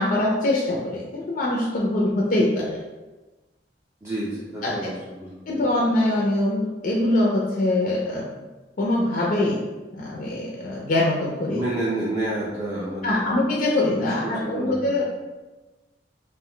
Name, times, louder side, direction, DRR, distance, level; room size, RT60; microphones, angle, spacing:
voice 1, 0.0-2.8 4.6-4.9 5.5-8.3 8.8-9.6 9.9-11.6 13.0-15.0, left 1 dB, 50° left, -3 dB, 0.4 m, -23 dB
voice 2, 4.0-5.6 11.5-13.3 13.9-15.0, right 1 dB, 15° right, -6 dB, 0.4 m, -30 dB
2.5 x 2.1 x 3.7 m, 1.2 s
head